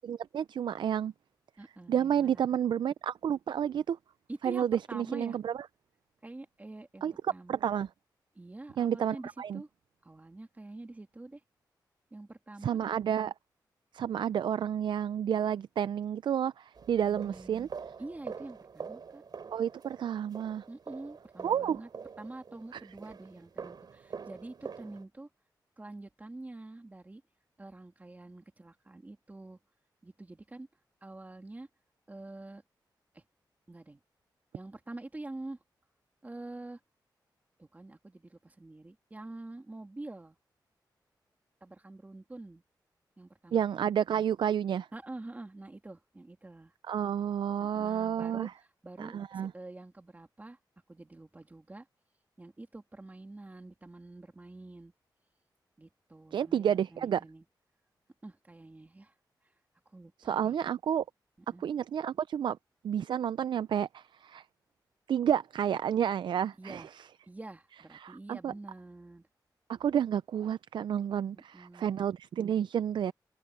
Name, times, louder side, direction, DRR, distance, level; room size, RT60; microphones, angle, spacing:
voice 1, 0.0-1.1 1.9-4.0 4.4-5.7 7.0-7.1 7.5-7.9 8.8-9.6 12.6-13.3 13.9-17.7 19.5-20.6 21.4-21.8 22.7-22.8 43.5-44.9 46.9-48.5 49.0-49.5 56.3-57.2 60.2-61.0 61.6-62.6 62.8-64.4 65.1-66.8 67.9-68.5 69.7-73.1, right 9 dB, 85° right, 0.4 m, -30 dB
voice 2, 1.6-2.6 4.3-5.4 6.2-7.5 8.3-9.7 10.0-11.4 12.1-12.8 17.1-17.7 18.0-19.2 20.7-21.9 22.2-25.3 25.8-27.2 27.6-29.6 30.0-30.7 31.0-31.7 32.1-32.6 33.1-33.2 33.7-34.0 34.5-35.6 36.2-36.8 37.6-40.4 41.6-42.6 43.2-43.8 44.9-46.7 47.6-50.6 50.9-51.9 52.4-54.9 55.8-57.4 58.2-59.1 59.9-60.5 61.5-61.6 66.6-66.9 67.3-69.3 71.3-71.9, right 2 dB, 20° right, 2.8 m, -46 dB
sound 1, 16.8-25.0, right 6 dB, 65° right, 3.6 m, -45 dB
wide cardioid pair, 125°, 8 cm